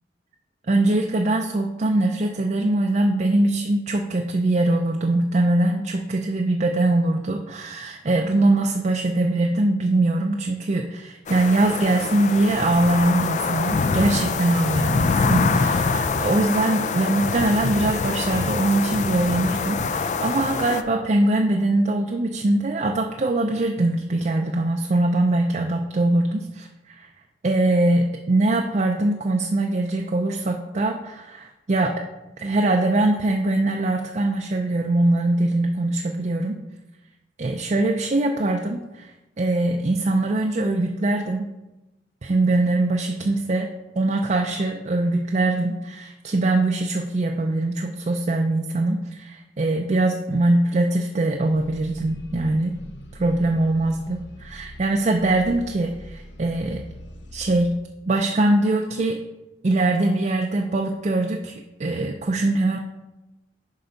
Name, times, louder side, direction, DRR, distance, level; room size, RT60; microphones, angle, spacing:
voice 1, 0.7-27.1 27.4-32.0 32.4-36.6 37.4-39.1 39.4-41.5 42.2-43.7 44.0-52.8 53.2-56.8 57.3-57.7 58.1-59.2 59.6-61.5 61.8-62.8, right 2 dB, 40° right, 2 dB, 0.4 m, -22 dB
sound 1, 11.3-20.8, left 4 dB, 40° left, 0.4 m, -25 dB
sound 2, 51.4-57.8, equal, 75° left, 0.7 m, -42 dB
7.7 x 5.3 x 4.0 m, 1.0 s
head